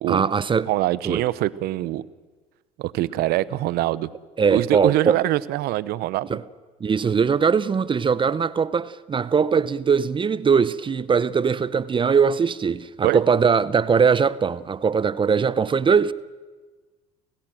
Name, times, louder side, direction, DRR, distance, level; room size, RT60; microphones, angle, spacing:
voice 1, 0.1-0.7 1.0-1.2 4.4-5.2 6.3-6.4 6.8-16.1, right 6 dB, 30° right, 0.8 m, -21 dB
voice 2, 0.7-2.0 2.8-4.1 4.5-6.4 13.0-13.2, right 16 dB, 65° right, 0.9 m, -24 dB
30.0 x 16.0 x 7.7 m
supercardioid pair, 75°, 17 cm